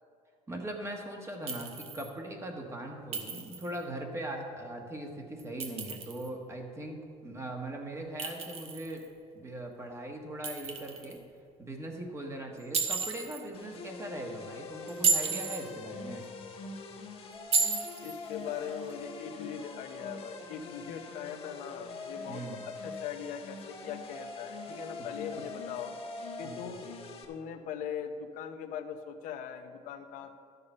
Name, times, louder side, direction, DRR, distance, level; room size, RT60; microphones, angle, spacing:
voice 1, 0.5-9.0 9.3-11.2 11.6-16.2 22.3-22.6 25.0-25.1 26.4-26.7, right 1 dB, 20° right, 2 dB, 1.4 m, -40 dB
Chink clink, 1.5-2.1 3.1-3.8 5.4-6.3 8.2-9.1 10.4-11.2 12.7-13.4 14.9-15.7 17.5-18.2, right 4 dB, 45° right, 1.2 m, -32 dB
sound 1, 13.5-27.2, left 4 dB, 45° left, 1.2 m, -47 dB
sound 2, 13.8-16.7 17.3-23.1 23.7-26.7, left 4 dB, 15° left, 1.0 m, -45 dB
voice 2, 18.0-25.9 26.4-26.9 27.3-30.4, left 8 dB, 70° left, 7 dB, 0.8 m, -40 dB
12.5 x 6.8 x 5.5 m, 2.3 s
cardioid pair, 135°, 14 cm